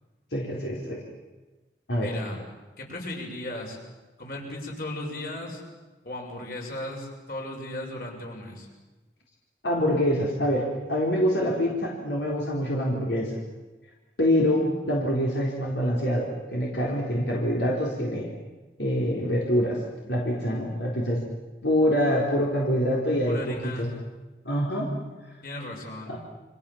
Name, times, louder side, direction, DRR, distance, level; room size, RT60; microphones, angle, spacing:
voice 1, 0.3-1.0 1.9-2.1 9.6-13.3 14.2-18.3 18.8-19.8 20.1-21.2 21.6-23.4 23.8-23.9 24.4-24.9 26.1-26.2, equal, 80° left, -2 dB, 4.4 m, -25 dB
voice 2, 2.0-2.4 2.8-3.8 4.2-5.6 6.0-8.7 23.3-23.9 25.4-26.1, left 1 dB, 55° left, 0 dB, 6.9 m, -36 dB
29.5 x 25.5 x 7.4 m, 1.2 s
head